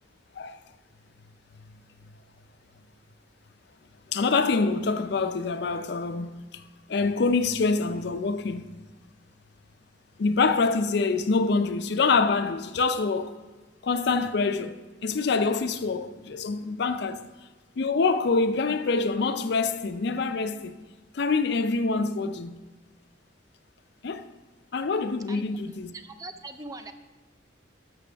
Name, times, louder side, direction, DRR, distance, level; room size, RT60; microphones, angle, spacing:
voice 1, 4.1-6.5 6.9-8.7 10.2-13.4 13.8-17.2 17.8-20.8 21.1-22.6 24.0-24.2 24.7-25.9, left 4 dB, 55° left, 0.4 m, -25 dB
voice 2, 25.9-26.9, right 2 dB, 20° right, 0.4 m, -41 dB
13.0 x 6.2 x 3.4 m
head